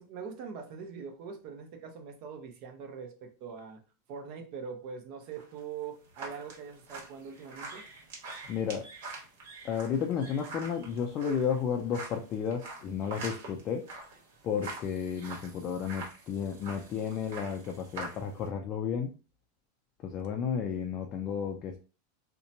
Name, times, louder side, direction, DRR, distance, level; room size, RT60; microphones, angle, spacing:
voice 1, 0.0-3.8 4.1-7.8, right 6 dB, 50° right, 0.7 m, -42 dB
sound 1, 5.3-18.5, right 3 dB, 70° right, 1.2 m, -45 dB
voice 2, 8.5-8.9 9.6-13.9 14.4-19.1 20.0-21.8, left 7 dB, 35° left, 0.4 m, -32 dB
2.8 x 2.1 x 2.6 m
supercardioid pair, 140°, 0 cm